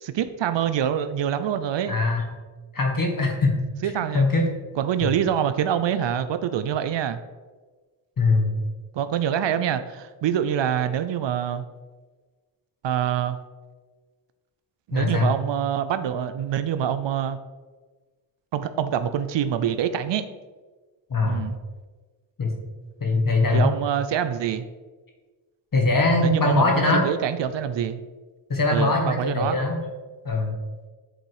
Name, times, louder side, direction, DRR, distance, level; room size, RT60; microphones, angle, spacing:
voice 1, 0.0-2.0 3.8-4.2 4.8-7.2 8.9-11.6 12.8-13.4 14.9-17.4 18.5-20.3 21.2-21.6 23.5-24.7 26.2-28.0 28.7-29.6, right 9 dB, 65° right, 11 dB, 0.6 m, -25 dB
voice 2, 1.9-2.3 2.7-3.6 4.1-4.4 8.2-8.5 14.9-15.3 21.1-21.4 22.4-22.5 23.0-23.7 25.7-27.1 28.5-29.8 30.2-30.6, left 3 dB, 40° left, 1 dB, 1.9 m, -21 dB
8.0 x 3.8 x 4.8 m, 1.3 s
cardioid pair, 55°, 49 cm